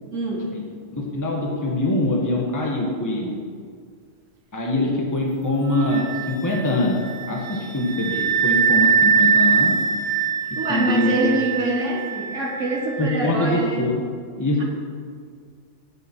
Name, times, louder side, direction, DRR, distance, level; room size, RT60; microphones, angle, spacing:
voice 1, 0.1-0.5 4.8-4.9 10.6-13.9 14.6-14.7, right 2 dB, 85° right, -3 dB, 2.1 m, -25 dB
voice 2, 0.9-3.3 4.5-7.0 7.3-9.8 10.7-11.4 13.0-13.9 14.4-14.6, left 1 dB, 15° left, -2 dB, 1.3 m, -23 dB
Wind instrument woodwind instrument, 5.7-13.1, right 6 dB, 60° right, 0.9 m, -22 dB
17.5 x 7.0 x 4.5 m, 2.1 s
omnidirectional pair, 1.2 m